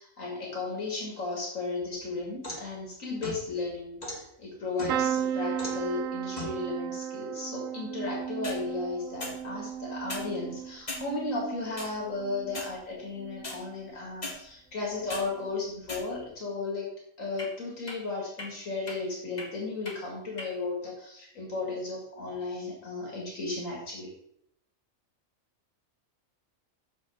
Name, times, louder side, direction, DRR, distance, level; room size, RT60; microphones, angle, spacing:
voice 1, 0.0-16.9 17.2-24.1, left 3 dB, 75° left, -2 dB, 2.4 m, -35 dB
sound 1, 1.8-2.7 3.2-4.2 4.8-5.2 5.6-5.9 6.4-6.6 8.2-8.6 9.2-9.4 10.0-10.3 10.9-11.1 11.8-11.9 12.5-12.7 13.4-13.6 14.2-14.4 14.8-15.2 15.8-16.4 17.4-17.5 17.9-18.0 18.4-18.5 18.9-19.0 19.4-19.5 19.9-20.0 20.4-20.5, left 2 dB, 30° left, 2.0 m, -38 dB
sound 2, 4.9-12.7 13.2-13.7 15.0-15.2 15.4-15.5, right 9 dB, 85° right, 1.0 m, -35 dB
6.7 x 6.4 x 5.9 m, 0.73 s
omnidirectional pair, 1.4 m